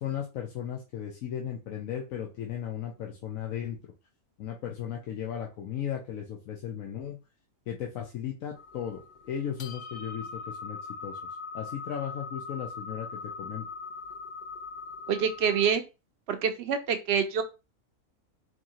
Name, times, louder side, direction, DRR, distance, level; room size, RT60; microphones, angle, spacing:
voice 1, 0.0-3.8 4.4-7.2 7.7-9.0 9.3-11.2 11.5-13.7, left 9 dB, 80° left, 0 dB, 1.1 m, -36 dB
sound 1, 8.5-15.7, left 4 dB, 45° left, 0.6 m, -41 dB
voice 2, 15.1-15.8 16.3-17.4, right 7 dB, 60° right, 8 dB, 0.8 m, -26 dB
4.6 x 3.0 x 2.8 m, 0.29 s
omnidirectional pair, 1.4 m